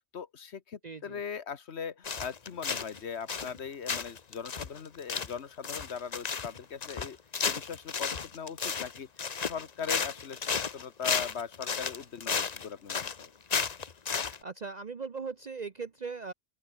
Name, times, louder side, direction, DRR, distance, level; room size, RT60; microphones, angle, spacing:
voice 1, 0.1-7.2 7.4-9.1 9.3-13.3, left 6 dB, 75° left, 1.5 m, -40 dB
voice 2, 0.8-1.2 14.4-16.3, right 5 dB, 40° right, 1.0 m, -39 dB
sound 1, 2.0-3.0 3.3-3.6 3.9-14.4, left 6 dB, 40° left, 0.9 m, -33 dB
open air
omnidirectional pair, 1.1 m